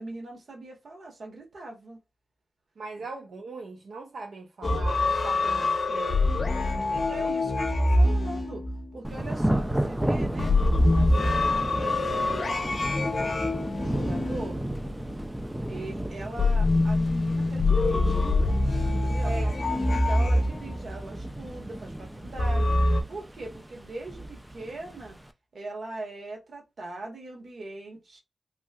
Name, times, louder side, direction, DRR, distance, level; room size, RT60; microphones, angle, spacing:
voice 1, 0.0-2.0 7.1-8.6 8.9-10.6 10.9-13.1 13.5-14.6 15.7-18.2 18.8-22.7 23.1-25.2 25.5-28.2, right 2 dB, 60° right, 1.2 m, -41 dB
voice 2, 2.8-6.4 6.7-7.3 19.2-19.5, right 3 dB, 85° right, 0.6 m, -40 dB
sound 1, 4.6-9.2 10.4-15.2 16.4-21.0 22.4-23.0, left 2 dB, 45° left, 0.6 m, -25 dB
Thunder / Rain, 9.0-25.3, right 1 dB, 5° right, 0.3 m, -34 dB
3.1 x 2.7 x 2.3 m
wide cardioid pair, 135°, 0 cm